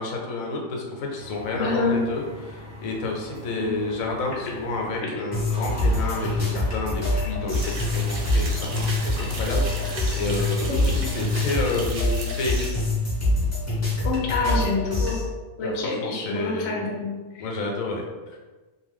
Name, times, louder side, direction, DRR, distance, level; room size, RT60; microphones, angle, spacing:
voice 1, 0.0-2.2 2.5-12.8 14.2-14.7 15.6-16.9 17.4-18.0 18.3-18.4, left 3 dB, 90° left, 0 dB, 1.0 m, -30 dB
sound 1, 1.2-5.0 5.3-11.8, left 1 dB, 5° right, 0.9 m, -39 dB
voice 2, 1.5-2.0 3.6-3.7 5.0-5.1 10.7-11.2 14.0-15.2 15.6-17.5, left 3 dB, 70° left, -1 dB, 0.8 m, -27 dB
sound 2, 5.3-15.2, left 2 dB, 20° left, 0.5 m, -25 dB
sound 3, 7.5-12.7, right 3 dB, 60° right, 0.7 m, -37 dB
2.5 x 2.2 x 3.4 m, 1.3 s
omnidirectional pair, 1.4 m